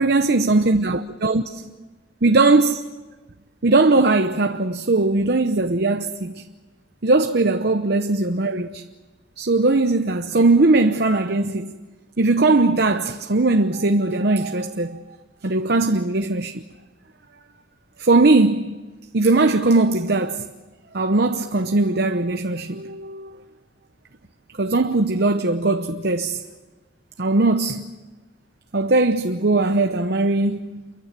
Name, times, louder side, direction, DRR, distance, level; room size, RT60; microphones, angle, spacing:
voice 1, 0.0-1.7 2.2-2.8 3.6-6.4 7.0-8.8 9.4-11.7 12.2-15.0 15.4-16.6 18.0-18.7 19.1-20.5 20.9-23.3 24.6-26.4 27.2-27.8 28.7-30.7, right 2 dB, 55° right, 0.9 m, -19 dB
28.5 x 23.5 x 7.5 m
head